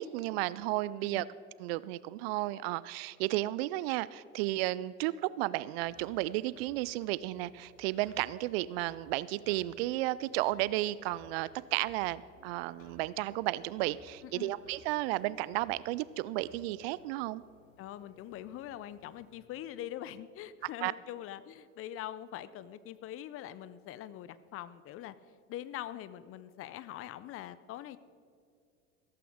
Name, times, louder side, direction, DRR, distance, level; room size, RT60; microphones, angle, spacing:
voice 1, 0.0-1.3 1.6-17.4 20.8-20.9, right 17 dB, 55° right, 19 dB, 0.4 m, -33 dB
voice 2, 1.0-1.3 14.2-14.5 17.8-25.2 25.5-28.0, left 12 dB, 35° left, 16 dB, 0.6 m, -43 dB
sound 1, 5.8-19.3, left 2 dB, 80° left, 2.7 m, -60 dB
15.5 x 14.0 x 3.6 m, 2.3 s
hypercardioid pair, 80°, 38 cm